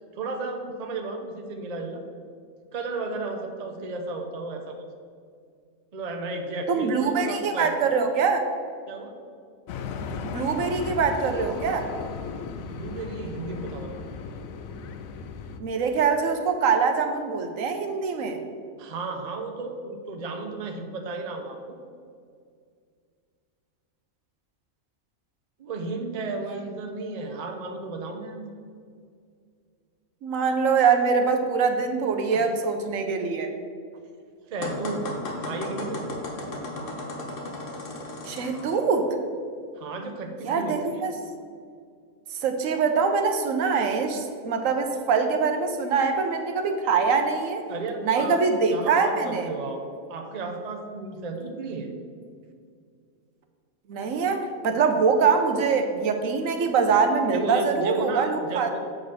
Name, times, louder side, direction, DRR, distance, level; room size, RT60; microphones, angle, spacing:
voice 1, 0.2-2.0 2.7-4.8 5.9-7.8 8.9-9.2 12.7-14.0 18.8-21.8 25.6-28.5 32.3-32.5 34.4-35.1 35.4-36.1 39.8-40.9 47.7-48.4 48.7-49.8 50.1-51.9 57.3-58.8, right 3 dB, 40° right, 4 dB, 0.7 m, -33 dB
voice 2, 6.7-8.4 10.3-11.9 15.6-18.4 30.2-33.5 38.2-39.1 40.4-41.1 42.4-47.6 48.0-49.5 53.9-58.8, right 5 dB, 80° right, 5 dB, 1.1 m, -24 dB
sound 1, 9.7-15.6, left 5 dB, 85° left, 1.0 m, -36 dB
sound 2, 34.6-38.8, left 2 dB, 65° left, 1.5 m, -35 dB
7.6 x 4.0 x 6.4 m, 2.2 s
omnidirectional pair, 1.4 m